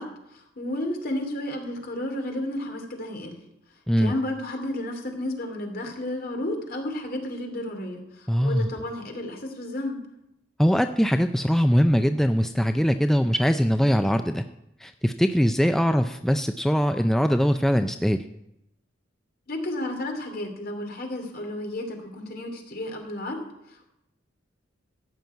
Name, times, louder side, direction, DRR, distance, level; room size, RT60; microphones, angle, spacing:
voice 1, 0.0-3.4 4.0-10.1 19.5-23.9, left 1 dB, 50° left, 3 dB, 2.7 m, -32 dB
voice 2, 8.3-8.7 10.6-14.4 14.8-18.2, equal, ahead, 7 dB, 0.4 m, -22 dB
14.5 x 6.0 x 9.2 m, 0.84 s
head